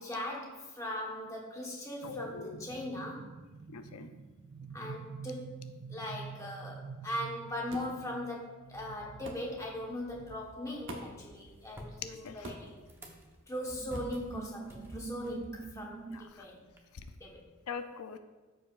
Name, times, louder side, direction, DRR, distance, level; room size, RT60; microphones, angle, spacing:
voice 1, 0.0-3.3 4.7-5.6 5.9-12.8 13.5-16.6 17.2-17.4, left 1 dB, 15° left, -2 dB, 1.1 m, -40 dB
voice 2, 2.0-2.7 3.7-4.1 12.0-12.5 16.1-16.5 16.9-17.0 17.7-18.2, left 6 dB, 85° left, 8 dB, 0.5 m, -42 dB
sound 1, 2.0-11.7 12.1-12.4 13.8-16.3, right 5 dB, 40° right, 0.3 m, -47 dB
sound 2, 7.7-8.0 9.2-9.5 10.9-11.2 12.4-12.8 13.9-14.2, equal, 60° right, 1.0 m, -44 dB
sound 3, 9.8-16.8, equal, 10° right, 0.8 m, -52 dB
13.5 x 4.9 x 2.4 m, 1.2 s
head